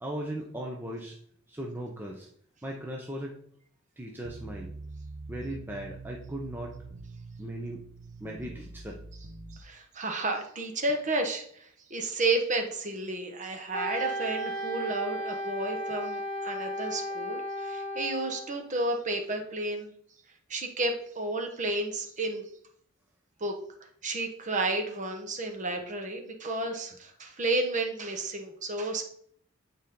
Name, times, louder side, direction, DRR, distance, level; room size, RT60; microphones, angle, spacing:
voice 1, 0.0-1.2 1.5-2.3 2.6-3.4 4.0-4.7 5.3-6.8 7.4-7.9 8.2-9.0 26.6-26.7, right 1 dB, 10° right, -1 dB, 0.7 m, -38 dB
sound 1, 4.2-9.6, right 3 dB, 60° right, 0.7 m, -44 dB
voice 2, 9.5-19.9 20.5-22.5 23.4-23.6 24.0-29.0, right 2 dB, 35° right, 4 dB, 1.1 m, -32 dB
Wind instrument woodwind instrument, 13.7-18.5, equal, 25° left, 1.4 m, -35 dB
8.7 x 4.1 x 3.8 m, 0.64 s
head